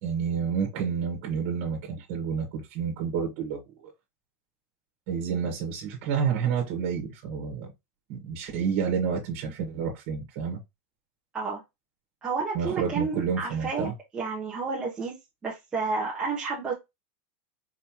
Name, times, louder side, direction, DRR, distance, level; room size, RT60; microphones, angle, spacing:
voice 1, 0.0-3.9 5.1-7.7 8.1-10.6 12.5-13.9, right 6 dB, 50° right, 1.6 m, -29 dB
voice 2, 12.2-15.1 15.4-16.7, right 4 dB, 15° right, 1.2 m, -31 dB
4.7 x 3.3 x 3.0 m
supercardioid pair, 165°, 7 cm